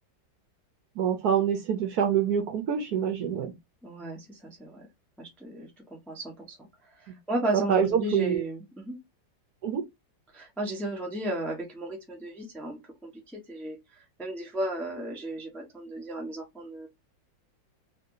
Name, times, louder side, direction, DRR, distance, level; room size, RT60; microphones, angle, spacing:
voice 1, 1.0-3.5 7.5-8.4 9.6-9.8, right 8 dB, 65° right, 1.1 m, -26 dB
voice 2, 3.8-4.8 5.2-6.6 7.0-9.0 10.3-13.8 14.2-16.9, right 1 dB, ahead, 0.6 m, -34 dB
3.4 x 2.8 x 2.6 m
omnidirectional pair, 2.0 m